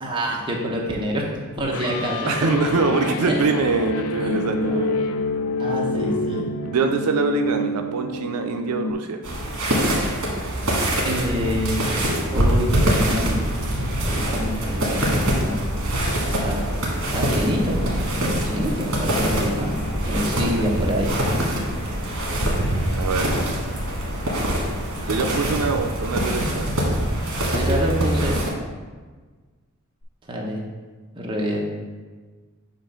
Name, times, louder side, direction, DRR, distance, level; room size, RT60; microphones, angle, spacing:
voice 1, 0.0-1.3 1.6-2.3 3.3-3.5 4.2-4.4 5.6-6.4 11.0-11.8 12.3-13.4 14.0-15.6 16.4-16.6 17.1-19.8 20.1-21.2 27.5-28.4 30.3-30.6 31.2-31.7, equal, 20° right, -2 dB, 0.9 m, -26 dB
sound 1, 0.7-8.9, left 2 dB, 70° left, 0.4 m, -27 dB
voice 2, 2.3-5.1 6.6-9.2 20.4-20.7 23.0-23.4 25.1-26.7, right 4 dB, 85° right, 5 dB, 0.4 m, -24 dB
sound 2, 9.2-28.5, right 1 dB, 60° right, 1.5 m, -24 dB
sound 3, 14.8-27.7 30.0-30.1, equal, 35° left, 0.8 m, -40 dB
7.3 x 2.5 x 5.6 m, 1.4 s
head